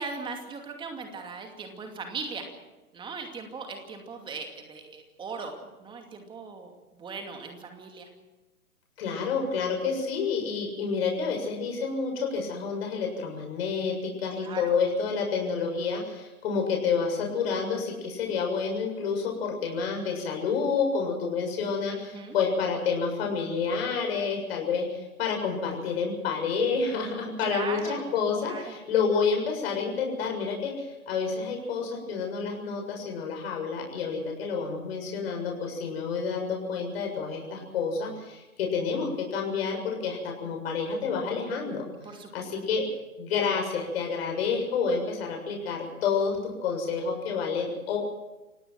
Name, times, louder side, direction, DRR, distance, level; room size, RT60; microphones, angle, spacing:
voice 1, 0.0-2.5 2.9-5.5 5.8-8.1 14.4-14.7 22.1-22.4 27.4-28.1 28.4-28.8 42.0-42.3, right 4 dB, 10° right, 4 dB, 2.5 m, -38 dB
voice 2, 9.0-41.8 42.3-42.8 43.2-48.0, left 5 dB, 40° left, 2 dB, 7.1 m, -29 dB
29.0 x 17.5 x 6.1 m, 1.1 s
figure-of-eight pair, 130°, 44 cm